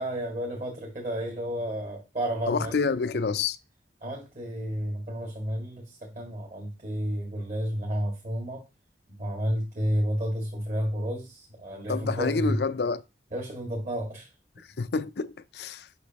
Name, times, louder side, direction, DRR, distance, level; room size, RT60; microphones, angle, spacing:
voice 1, 0.0-2.8 4.0-8.6 9.1-12.6 13.3-14.3, equal, 45° right, 2.0 m, -31 dB
voice 2, 2.5-3.6 11.9-13.0 14.8-15.9, left 4 dB, 65° left, 0.5 m, -28 dB
8.2 x 6.0 x 2.9 m
head